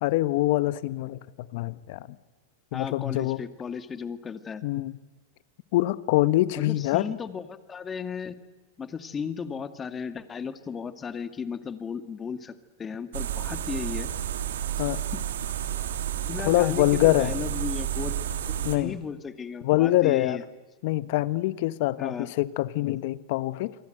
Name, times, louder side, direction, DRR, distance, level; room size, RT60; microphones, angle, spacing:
voice 1, 0.0-2.1 2.7-3.4 4.6-5.0 5.7-7.1 14.8-15.0 16.4-17.3 18.6-19.0 19.6-20.4 20.8-23.7, left 17 dB, 60° left, 16 dB, 1.2 m, -24 dB
voice 2, 2.7-4.6 6.6-8.3 8.8-14.1 15.1-15.2 16.2-20.4 22.0-22.3, left 6 dB, 20° left, 10 dB, 2.1 m, -35 dB
sound 1, 13.1-18.8, right 11 dB, 80° right, 2.8 m, -31 dB
27.5 x 24.0 x 8.0 m, 1.3 s
hypercardioid pair, 115°, 0 cm